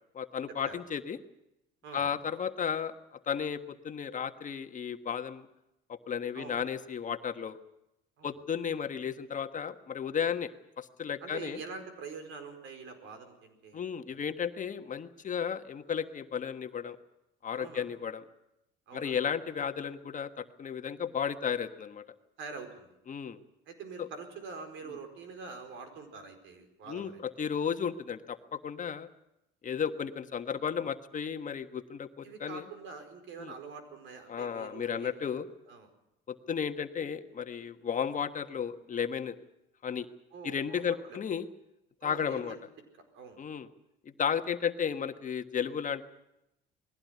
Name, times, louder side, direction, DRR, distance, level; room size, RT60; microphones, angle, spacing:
voice 1, 0.1-1.2 1.9-2.9 3.3-5.4 5.9-7.6 8.2-10.5 10.8-11.6 13.7-17.0 17.4-18.2 18.9-22.0 23.1-23.4 24.0-24.1 26.9-29.1 29.6-32.6 33.4-33.5 34.3-35.4 36.3-39.3 39.8-40.1 40.4-41.5 42.0-42.6 43.4-43.7 44.2-46.1, left 7 dB, 40° left, 8 dB, 1.4 m, -34 dB
voice 2, 11.2-13.8 14.1-14.2 17.5-17.9 18.9-19.1 22.4-22.9 23.7-27.2 32.2-35.4 35.7-35.9 40.3-41.2 42.0-42.6 42.9-43.4, right 4 dB, 70° right, 7 dB, 4.8 m, -45 dB
21.0 x 16.0 x 9.5 m, 0.85 s
supercardioid pair, 85°, 20 cm